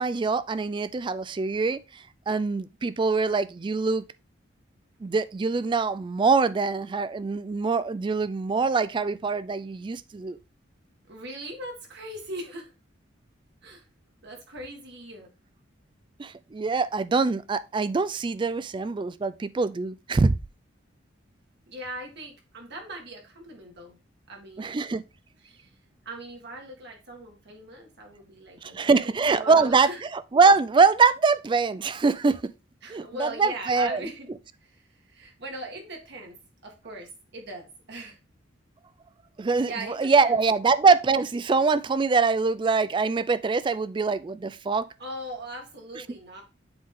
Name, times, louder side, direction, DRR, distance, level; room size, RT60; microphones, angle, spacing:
voice 1, 0.0-4.0 5.0-10.4 16.2-20.4 24.6-25.0 28.6-32.5 32.9-34.0 39.4-44.9, right 4 dB, 25° right, 0.3 m, -24 dB
voice 2, 11.1-12.7 13.6-13.8 14.2-15.3 21.7-24.0 24.3-24.8 25.4-25.7 26.1-30.0 32.8-34.3 34.6-36.4 36.6-38.2 39.7-40.4 45.0-46.4, right 1 dB, 60° right, 1.8 m, -40 dB
7.9 x 3.5 x 3.6 m
head